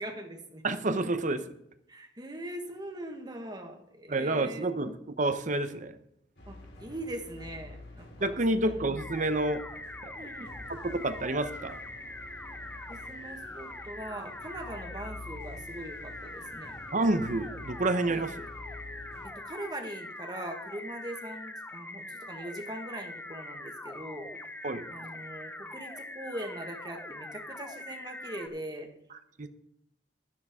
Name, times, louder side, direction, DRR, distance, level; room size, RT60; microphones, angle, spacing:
voice 1, 0.0-0.7 1.9-4.7 6.5-8.8 10.1-10.5 12.9-16.8 18.1-18.2 19.4-28.9, right 1 dB, 25° right, 5 dB, 1.5 m, -41 dB
voice 2, 0.6-1.4 4.1-6.0 8.2-9.6 10.0-10.1 10.8-11.8 16.9-18.3 24.6-24.9 29.4-29.5, right 2 dB, 45° right, 10 dB, 0.9 m, -29 dB
sound 1, 6.4-19.3, left 2 dB, 80° left, 4.1 m, -48 dB
sound 2, 9.0-28.5, left 2 dB, 10° left, 0.8 m, -43 dB
12.0 x 11.0 x 3.6 m, 0.79 s
head